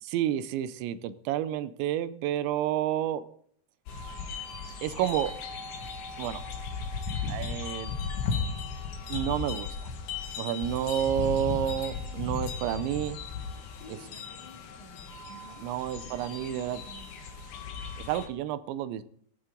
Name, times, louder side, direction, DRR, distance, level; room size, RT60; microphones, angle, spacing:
voice 1, 0.0-3.2 4.8-5.3 6.2-6.4 7.3-7.9 9.1-9.7 10.4-13.2 13.9-14.0 15.6-16.8 18.1-19.0, right 11 dB, 80° right, 13 dB, 2.9 m, -30 dB
sound 1, 3.9-18.3, left 5 dB, 80° left, 4.2 m, -36 dB
voice 2, 11.9-12.4 13.8-15.6 16.0-17.1, left 3 dB, 45° left, 0 dB, 3.8 m, -51 dB
17.0 x 15.5 x 3.9 m, 0.63 s
omnidirectional pair, 5.3 m